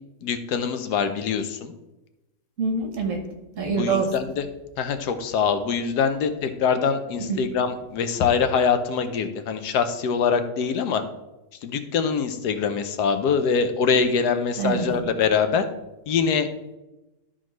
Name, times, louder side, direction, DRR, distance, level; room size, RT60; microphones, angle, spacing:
voice 1, 0.2-1.7 3.6-4.5 4.8-11.0 11.6-15.6 16.1-16.5, left 6 dB, 90° left, 9 dB, 1.3 m, -24 dB
voice 2, 2.6-3.2 3.6-4.1 7.2-7.4 14.6-15.0, right 4 dB, 55° right, 4 dB, 1.4 m, -25 dB
12.5 x 4.3 x 3.0 m, 1.0 s
omnidirectional pair, 1.7 m